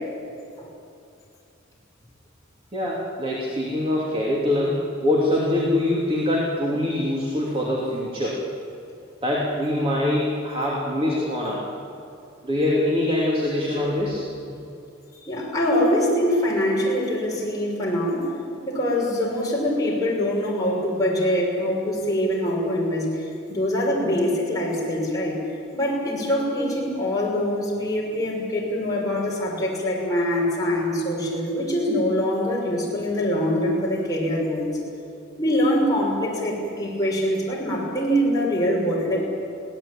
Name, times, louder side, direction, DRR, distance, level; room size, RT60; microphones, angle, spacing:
voice 1, 2.7-8.4 9.2-11.6 12.4-14.2, left 1 dB, 25° right, -4 dB, 3.1 m, -24 dB
voice 2, 15.3-18.3 18.6-25.4 25.7-34.7 35.4-39.3, equal, 15° left, -4 dB, 6.1 m, -24 dB
23.0 x 17.5 x 8.9 m, 2.6 s
head